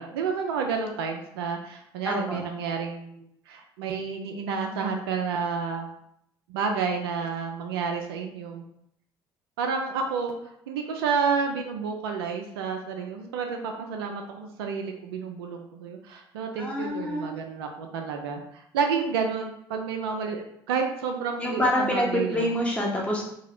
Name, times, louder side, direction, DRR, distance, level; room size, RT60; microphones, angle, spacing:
voice 1, 0.0-5.9 6.5-8.6 9.6-22.5, right 5 dB, 70° right, 3 dB, 0.4 m, -30 dB
voice 2, 2.0-2.4 16.6-17.3 21.4-23.2, left 1 dB, 10° left, -3 dB, 0.9 m, -26 dB
2.8 x 2.3 x 2.9 m, 0.74 s
figure-of-eight pair, 55°, 13 cm